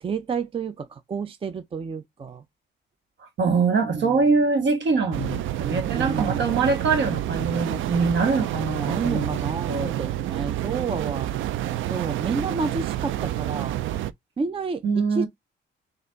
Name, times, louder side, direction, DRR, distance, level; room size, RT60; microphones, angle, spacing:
voice 1, 0.0-2.4 3.9-4.2 6.0-6.5 8.8-11.3 11.9-13.8 14.4-15.3, right 5 dB, 30° right, 0.5 m, -30 dB
voice 2, 3.4-9.4 9.7-10.0 14.8-15.3, right 4 dB, 65° right, 1.4 m, -23 dB
sound 1, 5.1-14.1, right 13 dB, 80° right, 0.4 m, -28 dB
4.1 x 2.5 x 3.9 m
cardioid pair, 90°, 20 cm